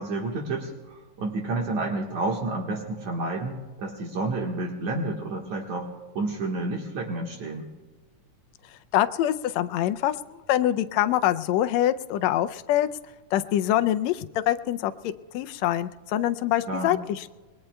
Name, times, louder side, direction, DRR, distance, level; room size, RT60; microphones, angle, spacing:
voice 1, 0.0-5.9 6.2-7.7 16.7-17.0, right 2 dB, 65° right, 0 dB, 2.7 m, -30 dB
voice 2, 8.9-10.2 10.5-12.9 13.3-14.9 15.3-17.3, left 12 dB, 80° left, 10 dB, 1.6 m, -24 dB
28.5 x 21.5 x 2.2 m, 1.3 s
omnidirectional pair, 3.7 m